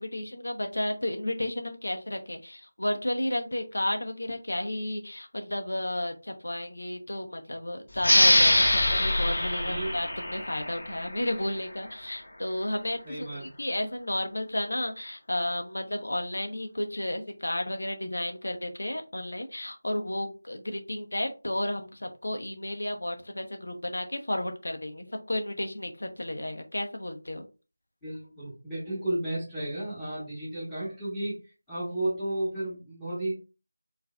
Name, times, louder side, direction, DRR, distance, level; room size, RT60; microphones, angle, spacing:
voice 1, 0.0-27.5, left 1 dB, 80° left, 5 dB, 0.8 m, -32 dB
sound 1, 8.0-11.3, left 1 dB, 65° left, 1.4 m, -23 dB
voice 2, 13.0-13.5 28.0-33.3, right 1 dB, 5° left, -14 dB, 1.2 m, -33 dB
4.5 x 2.6 x 2.3 m, 0.32 s
figure-of-eight pair, 170°, 0 cm